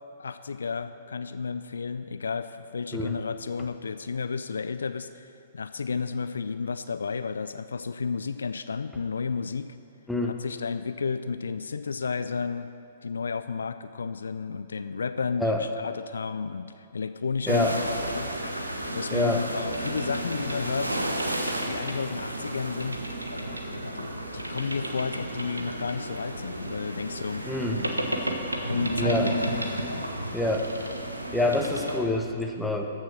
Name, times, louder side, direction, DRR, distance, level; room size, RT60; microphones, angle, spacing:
voice 1, 0.2-9.8 10.2-12.7 13.0-17.7 18.1-18.6 18.9-21.0 21.6-23.0 23.6-27.4 28.2-28.3 28.6-29.4 29.7-30.1, left 5 dB, 70° left, 11 dB, 0.4 m, -32 dB
voice 2, 17.5-17.8 19.1-19.4 27.5-27.9 29.0-29.3 30.3-30.7 31.3-32.9, left 1 dB, 5° left, 2 dB, 1.0 m, -26 dB
sound 1, 17.5-32.0, right 1 dB, 90° right, 1.1 m, -32 dB
14.0 x 6.5 x 6.1 m, 2.5 s
figure-of-eight pair, 115°, 0 cm